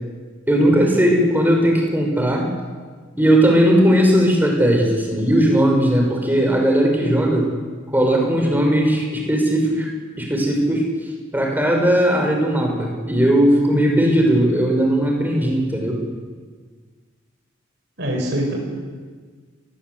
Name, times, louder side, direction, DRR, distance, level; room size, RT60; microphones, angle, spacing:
voice 1, 0.5-2.5 3.2-7.5 7.9-9.9 10.2-10.9 11.3-16.0, equal, 10° right, 1 dB, 5.8 m, -17 dB
voice 2, 18.0-18.5, equal, 55° right, -1 dB, 7.3 m, -25 dB
28.5 x 21.5 x 8.2 m, 1.5 s
head